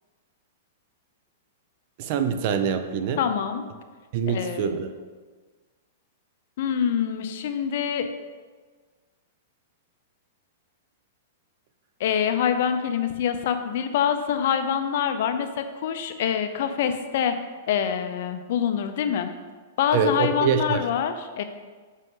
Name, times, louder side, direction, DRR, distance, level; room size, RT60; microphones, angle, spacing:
voice 1, 2.0-3.2 4.1-4.9 19.9-20.8, right 6 dB, 50° right, 9 dB, 0.5 m, -24 dB
voice 2, 3.2-3.6 4.3-4.8 6.6-8.1 12.0-17.3 17.7-19.3 19.8-21.4, left 8 dB, 60° left, 8 dB, 0.6 m, -25 dB
6.2 x 5.2 x 3.8 m, 1.4 s
hypercardioid pair, 145°, 0 cm